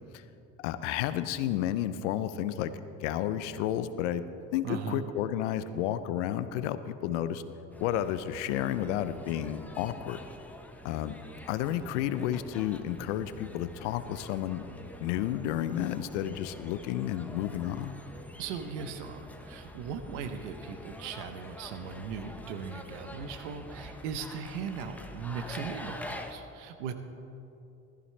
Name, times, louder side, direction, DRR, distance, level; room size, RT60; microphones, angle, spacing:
voice 1, 0.6-4.2 4.5-7.4 7.8-10.2 10.8-11.2 11.5-14.6 15.0-18.0, left 11 dB, 85° left, 12 dB, 0.7 m, -31 dB
voice 2, 4.6-5.0 18.4-26.9, right 6 dB, 85° right, 8 dB, 0.9 m, -38 dB
sound 1, 7.7-26.3, left 1 dB, 5° left, 1.1 m, -46 dB
14.5 x 14.0 x 3.3 m, 2.8 s
hypercardioid pair, 70°, 35 cm